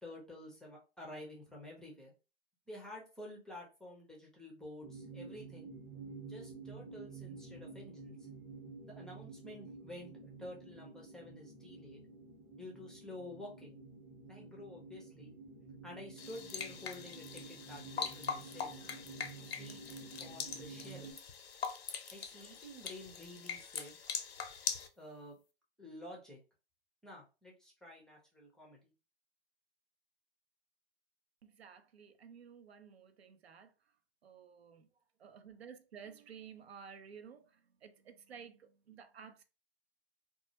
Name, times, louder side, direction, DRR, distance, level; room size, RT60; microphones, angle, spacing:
voice 1, 0.0-2.1 2.7-5.7 6.2-8.2 9.0-10.1 10.4-12.0 12.6-13.8 14.3-15.3 15.8-18.7 19.6-19.8 20.2-21.1 22.1-24.0 25.0-25.4 25.8-26.4 27.0-28.8, left 1 dB, ahead, 0.4 m, -50 dB
sound 1, 4.8-21.1, right 4 dB, 30° right, 0.7 m, -51 dB
sound 2, 16.2-24.9, left 6 dB, 85° left, 0.5 m, -42 dB
voice 2, 31.4-33.7 34.2-34.9 35.2-39.4, right 7 dB, 90° right, 0.5 m, -54 dB
2.2 x 2.0 x 2.7 m
hypercardioid pair, 120°, 30 cm